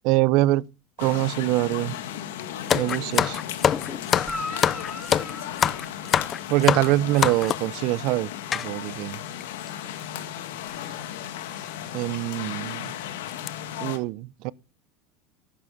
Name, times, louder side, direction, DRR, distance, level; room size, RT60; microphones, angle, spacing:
voice 1, 0.0-0.7 1.0-1.9 2.7-3.4 6.5-8.3 8.5-9.2 11.9-12.9 13.8-14.5, right 18 dB, 60° right, 0.6 m, -24 dB
sound 1, 1.0-14.0, left 10 dB, 90° left, 2.1 m, -35 dB
sound 2, 2.7-7.8 8.5-8.7 9.4-9.5 9.7-9.9 10.8-11.0 11.5-11.6 12.1-12.2 12.7-12.9 13.3-13.5, left 8 dB, 30° left, 0.6 m, -25 dB
Guitar, 4.3-6.8 10.6-10.7, left 1 dB, 5° left, 2.7 m, -38 dB
11.5 x 9.7 x 5.4 m
supercardioid pair, 120°, 0 cm